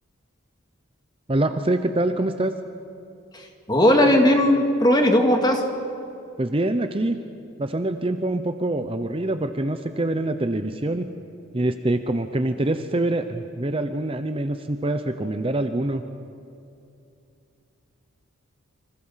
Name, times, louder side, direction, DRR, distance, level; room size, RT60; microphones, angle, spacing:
voice 1, 1.3-2.6 6.4-7.2 7.6-11.1 11.5-16.0, right 1 dB, 25° right, 8 dB, 0.7 m, -25 dB
voice 2, 3.3-5.6, left 1 dB, 20° left, 3 dB, 2.3 m, -18 dB
29.0 x 25.5 x 5.8 m, 2.6 s
head